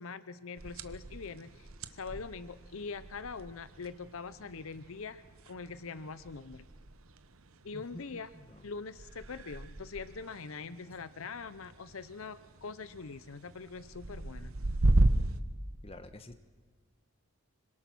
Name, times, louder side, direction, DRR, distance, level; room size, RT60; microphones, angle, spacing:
voice 1, 0.0-6.7 7.6-8.3 8.6-14.5, left 4 dB, 70° left, 14 dB, 0.7 m, -43 dB
sound 1, 0.6-15.4, right 1 dB, 70° right, 1.1 m, -36 dB
voice 2, 15.8-16.4, left 2 dB, 25° left, 9 dB, 1.2 m, -49 dB
26.5 x 25.0 x 6.1 m, 1.5 s
head